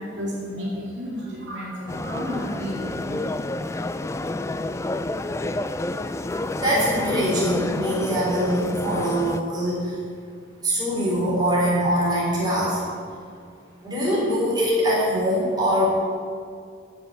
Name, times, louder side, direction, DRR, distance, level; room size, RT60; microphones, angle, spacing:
voice 1, 0.0-4.0, equal, 65° right, -5 dB, 2.8 m, -33 dB
sound 1, 1.9-9.4, left 2 dB, 15° left, 0.3 m, -29 dB
voice 2, 6.6-10.0 10.6-12.8 13.8-15.9, equal, 20° right, -6 dB, 3.9 m, -23 dB
14.0 x 5.7 x 8.3 m, 2.2 s
head